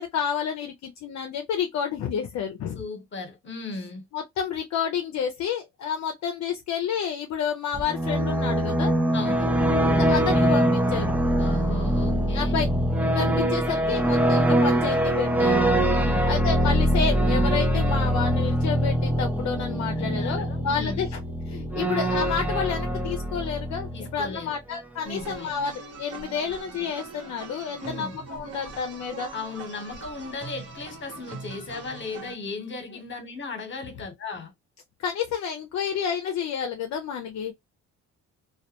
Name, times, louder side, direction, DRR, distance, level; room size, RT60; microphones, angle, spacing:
voice 1, 0.0-2.8 4.1-9.0 9.9-11.1 12.3-12.7 13.1-15.6 16.3-21.1 21.5-29.3 35.0-37.5, left 7 dB, 65° left, 0.6 m, -30 dB
voice 2, 2.7-4.0 9.1-9.5 11.4-12.6 15.9-16.3 19.9-21.1 23.9-24.5 25.0-25.5 27.8-28.2 29.3-34.5, left 3 dB, 40° left, 1.1 m, -36 dB
sound 1, 7.7-24.4, right 1 dB, 5° right, 0.5 m, -23 dB
sound 2, 25.0-32.4, right 4 dB, 55° right, 1.1 m, -41 dB
2.3 x 2.1 x 2.9 m
cardioid pair, 90°, 30 cm